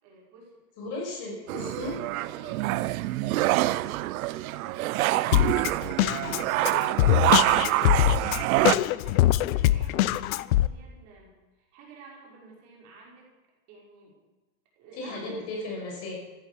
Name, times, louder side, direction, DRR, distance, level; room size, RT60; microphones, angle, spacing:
voice 1, 0.0-0.6 2.1-13.3 13.7-14.2 14.8-15.4, right 4 dB, 40° right, -3 dB, 5.7 m, -51 dB
voice 2, 0.8-2.0 15.0-16.1, left 2 dB, 35° left, -1 dB, 5.5 m, -35 dB
sound 1, 1.5-8.8, right 17 dB, 80° right, 0.7 m, -26 dB
Drum kit, 5.3-10.7, left 15 dB, 75° left, 0.7 m, -23 dB
15.0 x 12.5 x 7.0 m, 1.2 s
supercardioid pair, 175°, 42 cm